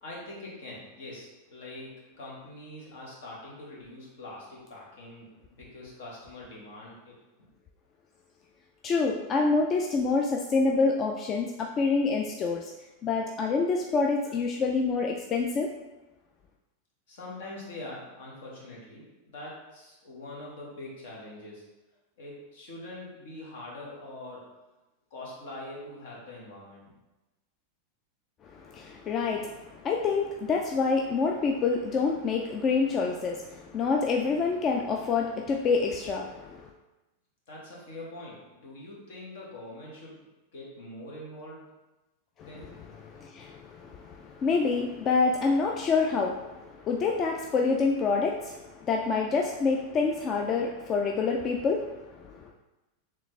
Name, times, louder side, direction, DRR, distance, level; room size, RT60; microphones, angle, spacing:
voice 1, 0.0-5.3 5.6-7.5 17.1-21.7 22.2-24.5 25.1-26.8 37.5-40.2 40.5-41.7 42.4-43.0, left 1 dB, 70° left, -4 dB, 1.5 m, -43 dB
voice 2, 8.8-12.7 13.0-15.7 28.5-36.7 42.4-42.5 43.0-52.5, left 4 dB, 35° left, 1 dB, 0.4 m, -27 dB
4.0 x 3.2 x 3.2 m, 1.0 s
hypercardioid pair, 110°, 0 cm